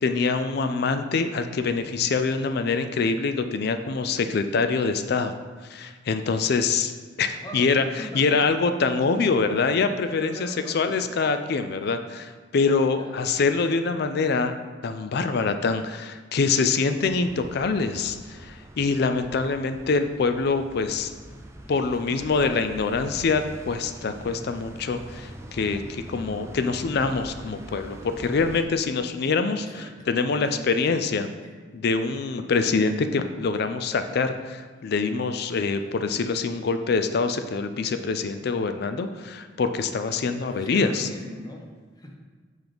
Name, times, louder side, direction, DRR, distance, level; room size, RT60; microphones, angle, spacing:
voice 1, 0.0-5.4 5.7-6.9 7.2-14.6 14.8-21.1 21.7-29.7 30.1-31.3 31.7-41.1, left 4 dB, 60° left, 9 dB, 0.4 m, -25 dB
voice 2, 7.3-7.7 8.0-8.6 10.1-11.1 12.9-13.2 21.9-22.7 29.6-31.5 40.4-42.2, left 1 dB, 20° left, 1 dB, 0.8 m, -41 dB
sound 1, 17.0-28.7, right 1 dB, 15° right, 0.5 m, -43 dB
5.8 x 5.5 x 3.5 m, 1.4 s
head